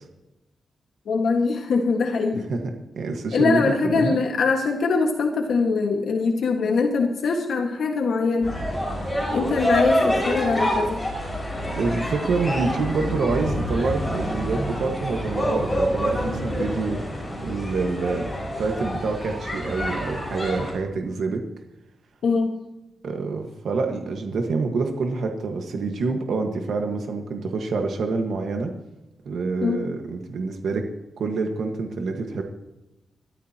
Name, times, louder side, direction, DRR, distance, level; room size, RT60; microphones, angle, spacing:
voice 1, 1.1-2.5 3.3-8.6 9.3-11.0 22.2-22.5 29.6-29.9, left 4 dB, 80° left, 2 dB, 1.7 m, -22 dB
voice 2, 2.9-4.2 9.0-9.2 11.8-17.0 17.4-18.3 18.6-21.4 23.0-28.7 29.2-30.9 31.2-32.4, right 4 dB, 85° right, 3 dB, 1.5 m, -26 dB
sound 1, 8.4-20.7, equal, 10° left, 5.7 m, -27 dB
21.5 x 13.5 x 2.9 m, 0.97 s
wide cardioid pair, 130°, 0 cm